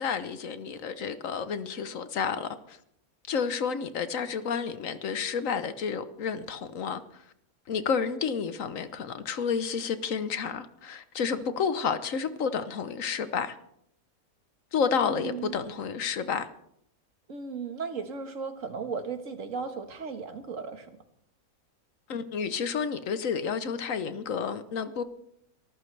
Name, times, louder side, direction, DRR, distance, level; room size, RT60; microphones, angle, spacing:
voice 1, 0.0-2.8 3.3-7.2 7.7-13.6 14.7-16.5 22.1-25.0, left 6 dB, 65° left, 1.3 m, -30 dB
voice 2, 14.8-15.5 17.3-20.9, right 5 dB, 60° right, 1.8 m, -36 dB
24.5 x 14.0 x 3.3 m
omnidirectional pair, 1.5 m